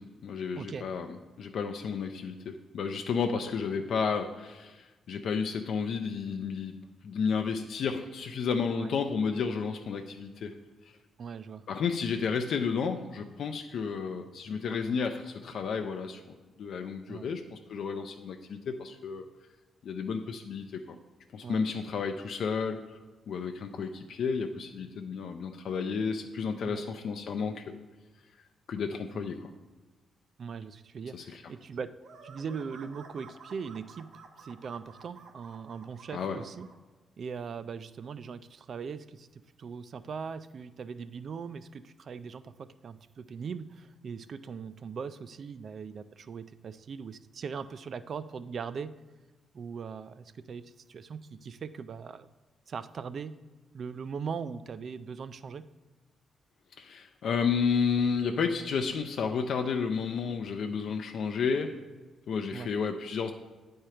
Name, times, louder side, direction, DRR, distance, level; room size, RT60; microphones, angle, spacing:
voice 1, 0.0-10.6 11.7-19.3 19.8-21.0 21.3-22.8 23.3-27.6 28.7-29.5 31.1-31.4 36.1-36.4 56.8-61.7 62.3-63.3, left 5 dB, 60° left, 5 dB, 0.4 m, -32 dB
voice 2, 0.5-0.9 3.3-3.4 8.7-8.9 11.2-11.6 14.9-15.0 17.1-17.3 21.4-21.7 26.6-26.8 29.1-29.2 30.4-36.7 37.2-49.0 49.5-52.3 52.7-53.4 53.7-55.7 62.5-62.7, right 6 dB, 45° right, 14 dB, 0.3 m, -40 dB
sound 1, 32.0-36.8, right 5 dB, 70° right, 0.9 m, -52 dB
9.1 x 4.4 x 4.9 m, 1.2 s
cardioid pair, 140°, 0 cm